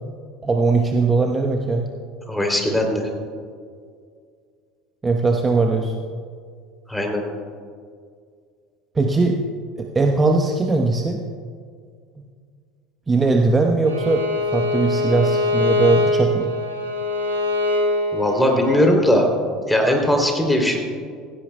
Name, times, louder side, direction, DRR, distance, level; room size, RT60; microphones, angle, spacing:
voice 1, 0.4-1.9 5.0-5.9 8.9-9.4 9.8-11.2 13.1-16.5, right 3 dB, 20° right, 3 dB, 0.9 m, -20 dB
voice 2, 2.3-3.1 6.9-7.2 18.1-19.3 19.7-20.8, left 1 dB, 5° left, 1 dB, 3.0 m, -19 dB
Bowed string instrument, 13.9-18.9, left 2 dB, 90° right, 1.5 m, -23 dB
17.5 x 16.0 x 2.2 m, 2.1 s
hypercardioid pair, 70°, 0 cm